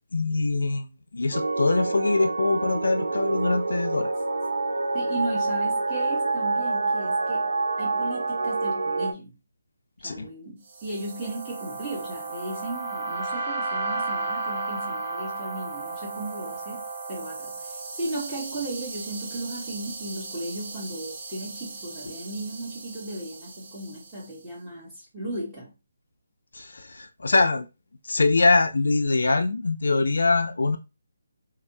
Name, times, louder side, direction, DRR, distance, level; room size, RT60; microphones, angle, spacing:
voice 1, 0.1-0.9 1.1-4.1 10.0-10.3 26.5-27.7 28.0-30.8, left 3 dB, 75° left, 0.4 m, -23 dB
sound 1, 1.3-9.1, right 3 dB, 75° right, 0.3 m, -27 dB
voice 2, 4.9-7.5 7.8-9.3 10.0-25.7, right 1 dB, 10° right, 1.3 m, -36 dB
sound 2, 10.7-24.1, right 3 dB, 40° right, 0.6 m, -35 dB
3.2 x 2.0 x 2.6 m
figure-of-eight pair, 160°, 0 cm